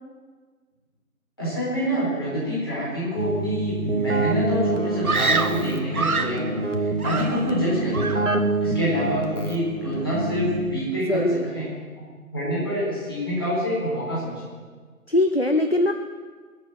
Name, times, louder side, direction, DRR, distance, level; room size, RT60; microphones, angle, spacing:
voice 1, 1.4-8.3 8.6-11.7 12.3-14.5, equal, 15° left, -9 dB, 4.2 m, -26 dB
Keyboard (musical), 3.2-11.0, right 2 dB, 55° right, 1.5 m, -27 dB
Screaming, 5.0-6.5 7.0-7.7 7.9-8.4, right 4 dB, 70° right, 0.9 m, -26 dB
voice 2, 11.1-11.5 15.1-15.9, left 1 dB, 45° left, 6 dB, 0.7 m, -21 dB
21.5 x 7.6 x 7.6 m, 1.5 s
figure-of-eight pair, 170°, 44 cm